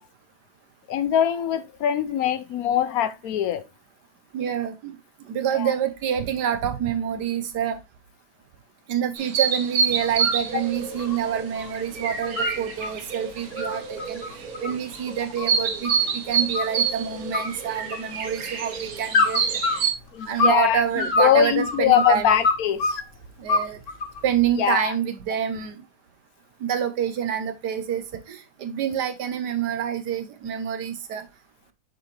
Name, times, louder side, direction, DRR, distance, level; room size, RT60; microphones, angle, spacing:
voice 1, 0.9-3.6 5.5-5.7 20.1-23.0 24.6-24.9, left 9 dB, 70° left, 1.0 m, -22 dB
voice 2, 4.3-5.0 5.3-7.8 8.9-14.2 14.6-19.4 20.3-22.3 23.4-23.8 24.2-25.8 26.6-31.2, right 9 dB, 90° right, 1.6 m, -27 dB
sound 1, 9.1-19.9, right 6 dB, 65° right, 1.5 m, -28 dB
sound 2, 10.0-10.4 10.8-11.7 12.0-12.9 13.4-16.1 16.5-17.0 17.3-18.3 19.1-20.6 21.0-23.0 23.5-24.2, left 3 dB, 55° left, 1.4 m, -25 dB
7.7 x 5.2 x 3.2 m
omnidirectional pair, 1.7 m